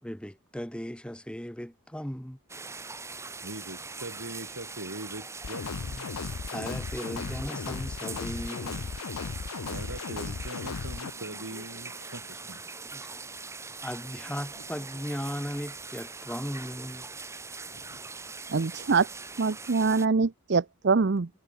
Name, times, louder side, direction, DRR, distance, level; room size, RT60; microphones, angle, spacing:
voice 1, 0.0-2.4 5.9-8.9 12.9-13.1 13.8-17.1, equal, 5° left, 1.5 m, -37 dB
sound 1, 2.5-20.1, right 4 dB, 15° right, 1.0 m, -42 dB
voice 2, 3.4-6.1 9.6-12.6 13.0-13.1, right 1 dB, 70° right, 4.8 m, -42 dB
Laughter, 3.8-6.3 7.6-10.0 10.9-13.4 14.2-16.7 17.5-19.5, left 2 dB, 65° left, 6.8 m, -57 dB
sound 2, 5.4-11.1, left 5 dB, 85° left, 0.6 m, -36 dB
voice 3, 18.5-19.1 19.4-21.3, right 4 dB, 50° right, 0.6 m, -24 dB
head